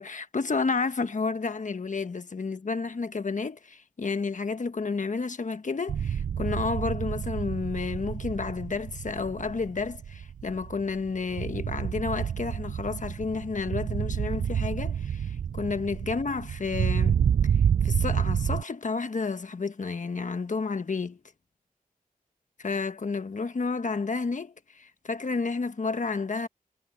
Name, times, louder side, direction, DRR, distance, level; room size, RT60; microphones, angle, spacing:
voice 1, 0.0-17.2 17.8-21.2 22.6-26.5, left 4 dB, 55° left, 1.3 m, -31 dB
sound 1, 5.9-18.6, right 8 dB, 60° right, 0.4 m, -29 dB
cardioid pair, 50°, 15 cm